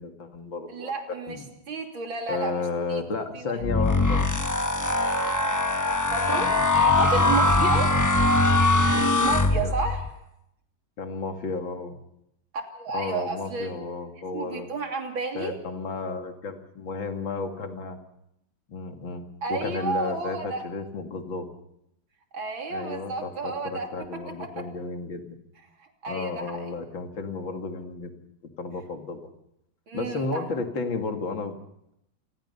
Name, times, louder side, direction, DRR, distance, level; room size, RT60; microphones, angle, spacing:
voice 1, 0.0-1.5 2.3-4.3 7.1-7.3 7.6-8.3 8.9-9.8 11.0-12.0 12.9-14.7 15.3-18.0 18.7-21.5 22.7-25.4 26.1-28.1 28.6-29.3 29.9-31.6, left 4 dB, 75° left, 5 dB, 2.9 m, -33 dB
voice 2, 0.7-2.6 2.9-3.0 3.3-3.5 6.1-7.9 9.2-10.1 12.5-13.7 14.3-15.6 19.4-20.6 22.3-23.9 24.4-24.5 25.8-26.7 29.9-30.5, right 3 dB, 80° right, 3 dB, 3.8 m, -31 dB
sound 1, 3.6-10.1, left 2 dB, 15° left, 0.6 m, -22 dB
27.5 x 21.0 x 5.6 m, 0.79 s
omnidirectional pair, 2.2 m